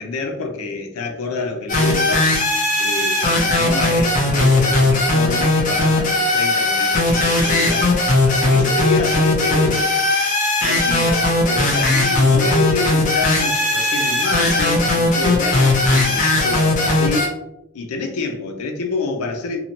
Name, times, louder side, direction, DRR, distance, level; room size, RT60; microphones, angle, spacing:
voice 1, 0.0-2.3 2.8-7.9 8.3-10.0 10.6-17.4 17.7-19.6, left 3 dB, 90° left, 3 dB, 0.5 m, -27 dB
sound 1, 1.7-17.3, left 2 dB, 35° left, 0.6 m, -18 dB
2.7 x 2.1 x 2.7 m, 0.84 s
head